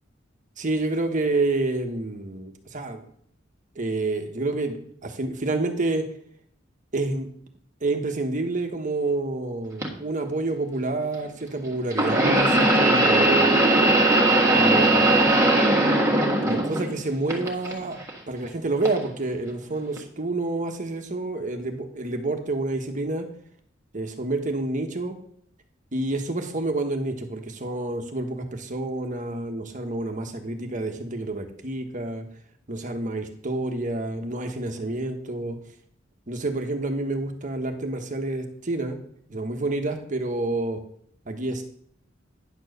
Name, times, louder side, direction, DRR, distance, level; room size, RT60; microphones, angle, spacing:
voice 1, 0.6-3.1 3.7-6.1 6.9-7.3 7.8-13.6 14.5-15.3 16.4-18.0 18.3-23.3 23.9-25.2 25.9-32.3 32.7-35.6 36.3-39.0 39.3-40.8 41.2-41.6, right 2 dB, 40° right, 5 dB, 1.2 m, -28 dB
sound 1, 9.8-9.9 11.9-17.0 17.3-18.1 18.8-19.0 20.0-20.1, right 2 dB, 15° right, 1.6 m, -19 dB
10.0 x 4.5 x 6.6 m, 0.65 s
head